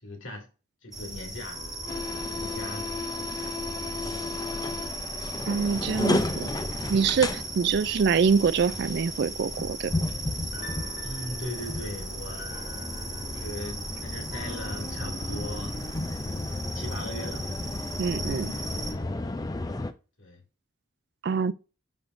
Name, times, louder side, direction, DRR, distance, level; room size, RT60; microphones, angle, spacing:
voice 1, 0.0-0.5 0.8-1.6 2.1-2.9 3.1-3.5 11.0-12.6 13.2-15.8 16.4-17.5 20.2-20.4, left 1 dB, 75° left, 2.5 m, -39 dB
sound 1, 0.9-18.9, right 1 dB, ahead, 1.6 m, -37 dB
sound 2, 1.5-16.1, left 1 dB, 50° left, 2.9 m, -48 dB
sound 3, 1.9-19.9, left 2 dB, 20° left, 0.4 m, -34 dB
voice 2, 5.5-6.5 6.9-9.9 18.0-18.5 21.2-21.5, right 6 dB, 55° right, 0.3 m, -25 dB
10.5 x 3.6 x 2.6 m
head